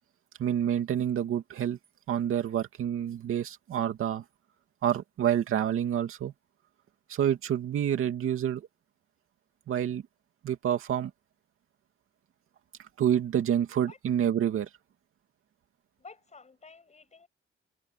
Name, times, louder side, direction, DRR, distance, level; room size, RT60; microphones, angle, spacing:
voice 1, 0.4-1.8 2.1-4.2 4.8-6.3 7.1-8.7 9.7-10.0 10.4-11.1 13.0-14.7, right 10 dB, 85° right, 2.5 m, -28 dB
voice 2, 16.0-17.3, left 4 dB, 35° left, 7.8 m, -51 dB
cardioid pair, 125°, 21 cm